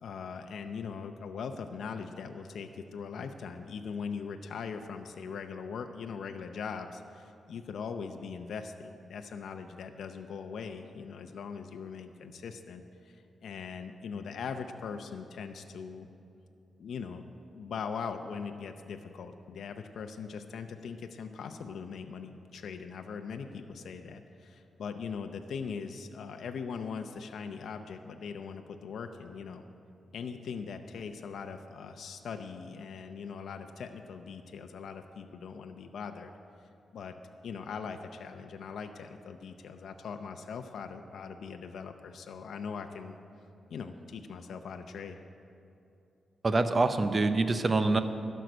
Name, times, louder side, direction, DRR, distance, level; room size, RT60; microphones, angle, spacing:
voice 1, 0.0-16.1 16.8-17.3 17.5-29.6 30.1-36.3 36.9-37.1 37.4-43.2 43.7-45.2, left 6 dB, 80° left, 6 dB, 0.6 m, -40 dB
voice 2, 46.4-48.0, right 3 dB, 35° right, 9 dB, 0.7 m, -25 dB
12.0 x 6.5 x 9.1 m, 2.7 s
cardioid pair, 110°, 0 cm